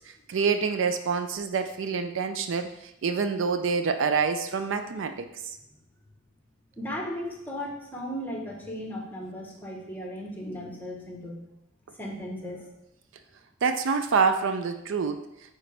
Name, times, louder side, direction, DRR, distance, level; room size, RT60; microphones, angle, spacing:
voice 1, 0.3-2.7 3.0-5.3 13.6-15.2, right 5 dB, 65° right, 8 dB, 0.4 m, -26 dB
voice 2, 6.8-11.4 12.0-12.6, equal, 10° left, -1 dB, 1.1 m, -36 dB
9.0 x 3.9 x 3.3 m, 0.84 s
head